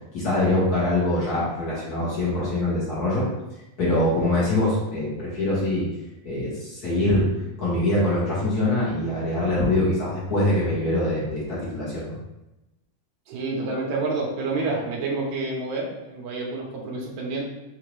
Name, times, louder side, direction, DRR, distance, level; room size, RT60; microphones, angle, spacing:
voice 1, 0.1-3.3 3.8-5.9 6.2-7.3 7.6-12.2, left 1 dB, 45° left, -8 dB, 1.3 m, -23 dB
voice 2, 13.3-17.5, right 3 dB, 70° right, -2 dB, 2.2 m, -28 dB
5.4 x 2.8 x 3.2 m, 0.96 s
omnidirectional pair, 3.6 m